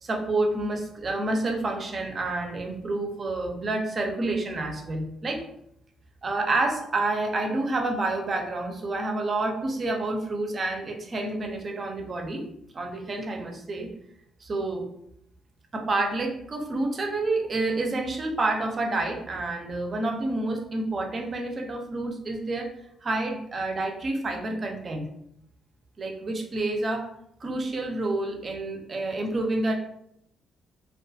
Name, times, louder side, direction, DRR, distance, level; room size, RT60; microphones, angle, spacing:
voice 1, 0.0-5.4 6.2-12.4 12.7-13.9 14.4-14.9 15.7-22.7 23.0-25.1 26.0-27.1 27.4-29.7, right 2 dB, 40° right, 3 dB, 0.5 m, -28 dB
2.4 x 2.3 x 2.6 m, 0.74 s
cardioid pair, 90°, 0 cm